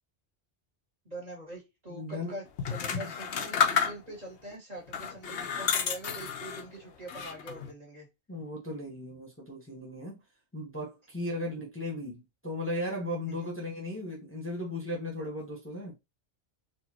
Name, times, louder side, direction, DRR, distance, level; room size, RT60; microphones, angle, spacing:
voice 1, 1.0-8.1 13.3-13.5, right 1 dB, 35° right, 2.0 m, -44 dB
voice 2, 1.9-2.3 2.9-3.1 8.3-10.2 10.5-15.9, left 1 dB, 10° left, 1.2 m, -36 dB
sound 1, 2.6-4.3 4.9-6.7 7.1-7.7, left 7 dB, 75° left, 1.0 m, -30 dB
4.2 x 2.7 x 2.9 m
omnidirectional pair, 1.1 m